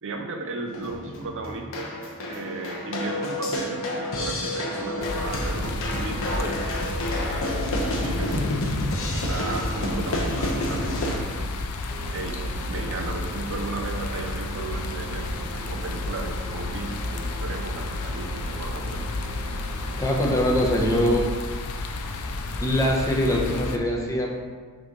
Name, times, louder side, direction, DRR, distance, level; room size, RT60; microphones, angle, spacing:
voice 1, 0.0-2.0 2.3-6.8 7.1-8.3 8.8-11.5 12.1-12.4 12.6-19.4, right 3 dB, 60° right, 4 dB, 0.7 m, -35 dB
sound 1, 0.7-11.2, left 1 dB, 65° left, 1.0 m, -29 dB
sound 2, 5.0-23.8, left 3 dB, 80° left, 0.5 m, -32 dB
sound 3, 11.9-21.2, right 2 dB, 20° right, 0.6 m, -38 dB
voice 2, 20.0-21.3 22.2-22.3 22.6-24.3, equal, 15° left, -1 dB, 0.9 m, -23 dB
6.3 x 3.1 x 5.3 m, 1.5 s
head